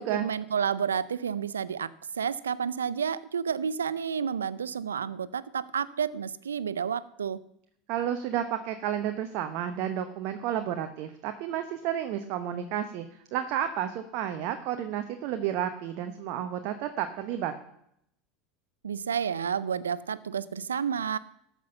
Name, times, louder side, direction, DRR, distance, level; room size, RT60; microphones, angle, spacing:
voice 1, 0.0-7.4 18.8-21.2, right 7 dB, 90° right, 19 dB, 0.5 m, -30 dB
voice 2, 7.9-13.1 13.3-17.5, right 10 dB, 60° right, 7 dB, 0.9 m, -31 dB
13.5 x 6.1 x 6.8 m, 0.74 s
hypercardioid pair, 85°, 0 cm